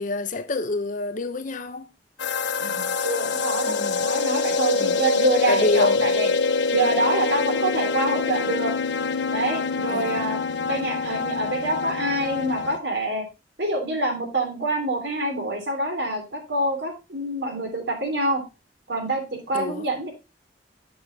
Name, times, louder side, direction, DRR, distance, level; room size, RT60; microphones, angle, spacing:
voice 1, 0.0-1.9 3.7-4.0 4.8-5.0 5.5-6.0 9.9-10.2 19.5-19.9, left 2 dB, 45° left, 0.7 m, -27 dB
sound 1, 2.2-12.8, left 4 dB, 80° left, 0.7 m, -25 dB
voice 2, 2.6-6.3 6.7-8.7 9.3-10.4 10.7-13.2 13.6-18.4 18.9-20.1, right 2 dB, 70° right, 3.0 m, -26 dB
7.8 x 6.5 x 3.9 m
head